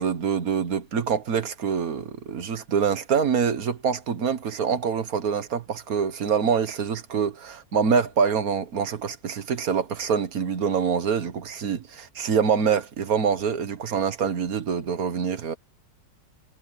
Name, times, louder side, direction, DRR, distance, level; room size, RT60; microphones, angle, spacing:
voice 1, 0.0-15.5, right 6 dB, 55° right, 1.7 m, -25 dB
omnidirectional pair, 2.0 m